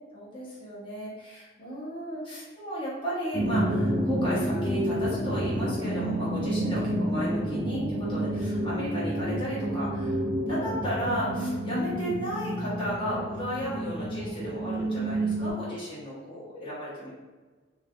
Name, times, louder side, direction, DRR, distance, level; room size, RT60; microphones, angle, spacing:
voice 1, 0.1-10.2 10.5-17.1, equal, 25° left, -8 dB, 1.2 m, -34 dB
sound 1, 3.3-15.5, right 1 dB, 20° right, 0.7 m, -29 dB
3.4 x 2.7 x 2.4 m, 1.3 s
head